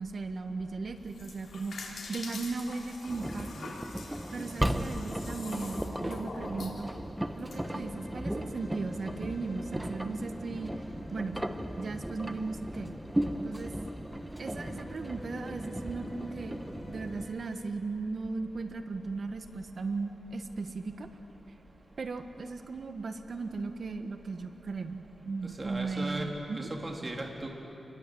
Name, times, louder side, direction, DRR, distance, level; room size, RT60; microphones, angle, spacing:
voice 1, 0.0-3.7 4.1-6.9 7.3-10.7 11.1-11.4 11.8-12.9 13.4-13.7 14.4-16.6 16.9-21.1 22.0-26.7, right 3 dB, 60° right, 7 dB, 1.6 m, -37 dB
sound 1, 1.0-7.6, left 3 dB, 85° left, 3.4 m, -44 dB
Engine, 3.1-17.3, right 1 dB, 10° right, 1.2 m, -36 dB
sound 2, 7.5-17.7, left 2 dB, 40° left, 2.9 m, -49 dB
voice 2, 25.6-26.3 26.6-27.5, right 2 dB, 30° right, 0 dB, 3.6 m, -37 dB
28.0 x 20.5 x 8.0 m, 3.0 s
wide cardioid pair, 85°, 0 cm